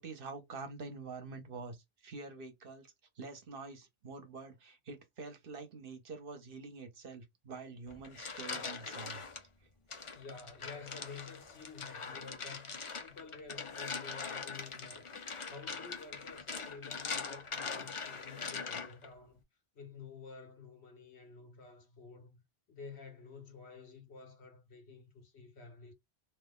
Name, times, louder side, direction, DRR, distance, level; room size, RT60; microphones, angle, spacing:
voice 1, 0.0-1.8 2.0-2.9 3.2-9.2, right 4 dB, 60° right, 1.0 m, -46 dB
sound 1, 7.9-9.4 9.9-19.1, left 5 dB, 40° left, 0.5 m, -42 dB
voice 2, 10.1-19.4 19.7-22.4 22.7-25.9, left 5 dB, 80° left, 1.4 m, -51 dB
2.9 x 2.3 x 3.5 m
omnidirectional pair, 1.1 m